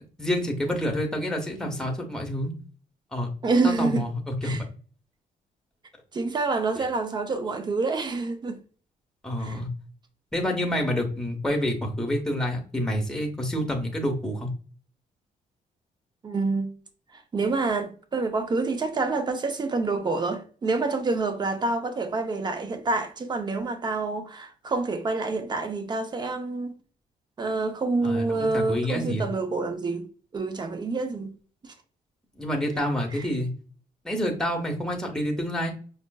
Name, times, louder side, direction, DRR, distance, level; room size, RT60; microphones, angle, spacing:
voice 1, 0.2-2.5 3.1-3.3 3.6-4.7 6.8-6.9 9.2-9.7 10.3-14.5 28.0-29.3 32.4-33.5 34.0-35.7, equal, 5° left, 0.8 m, -28 dB
voice 2, 3.4-4.1 4.4-4.6 6.1-8.6 9.4-9.6 16.2-16.7 17.3-26.7 27.4-30.1 30.3-31.3 33.1-33.3, right 3 dB, 30° right, 0.6 m, -27 dB
5.3 x 2.4 x 2.2 m
cardioid pair, 135°, 15 cm